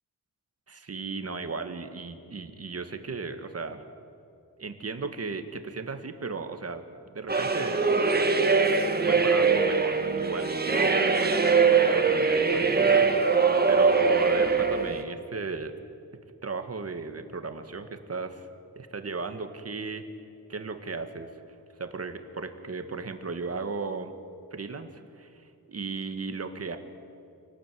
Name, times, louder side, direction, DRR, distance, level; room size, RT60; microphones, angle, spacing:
voice 1, 0.7-3.8 4.6-6.8 7.1-7.8 9.1-15.7 16.4-18.5 18.8-20.1 20.5-21.3 21.8-24.1 24.5-26.8, right 4 dB, 40° right, 7 dB, 1.9 m, -36 dB
sound 1, 7.3-15.0, right 4 dB, 25° right, 1.8 m, -22 dB
27.5 x 18.5 x 9.3 m, 2.5 s
wide cardioid pair, 145°, 37 cm